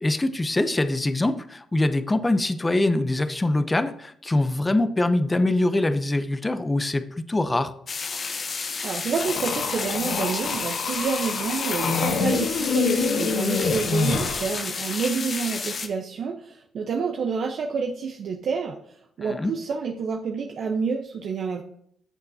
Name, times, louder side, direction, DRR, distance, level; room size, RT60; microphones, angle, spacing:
voice 1, 0.0-7.7 19.2-19.5, left 2 dB, 15° left, 11 dB, 0.7 m, -23 dB
sound 1, 7.9-15.9, left 4 dB, 45° left, 1.1 m, -31 dB
voice 2, 8.8-18.8 19.2-21.6, right 5 dB, 60° right, 1 dB, 0.9 m, -28 dB
sound 2, 9.2-14.5, left 5 dB, 75° left, 1.5 m, -26 dB
14.0 x 6.7 x 2.8 m, 0.66 s
cardioid pair, 90°, 0 cm